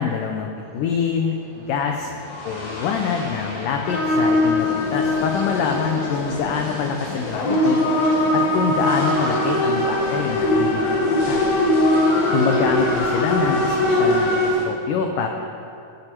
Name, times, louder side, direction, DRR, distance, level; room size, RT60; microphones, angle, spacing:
voice 1, 0.0-1.4 1.7-2.1 2.4-7.8 8.3-10.9 11.3-11.4 12.3-15.3, left 6 dB, 80° left, 3 dB, 1.9 m, -25 dB
sound 1, 0.6-14.7, left 1 dB, 25° left, 1.1 m, -35 dB
sound 2, 3.8-14.5, left 1 dB, 60° left, 2.4 m, -21 dB
17.5 x 8.0 x 4.5 m, 2.6 s
omnidirectional pair, 4.6 m